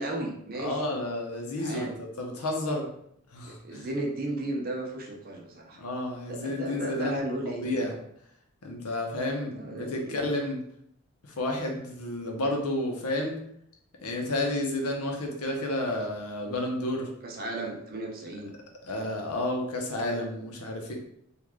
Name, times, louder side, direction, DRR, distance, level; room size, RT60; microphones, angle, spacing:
voice 1, 0.0-0.8 1.5-2.0 3.4-5.8 6.3-7.7 9.6-10.2 17.2-18.5, right 1 dB, 40° right, 1 dB, 0.6 m, -34 dB
voice 2, 0.6-2.9 3.3-3.9 5.8-7.9 8.6-10.6 11.2-13.4 14.0-17.1 18.8-20.9, left 1 dB, 90° left, 1 dB, 0.8 m, -31 dB
3.1 x 2.5 x 3.6 m, 0.71 s
head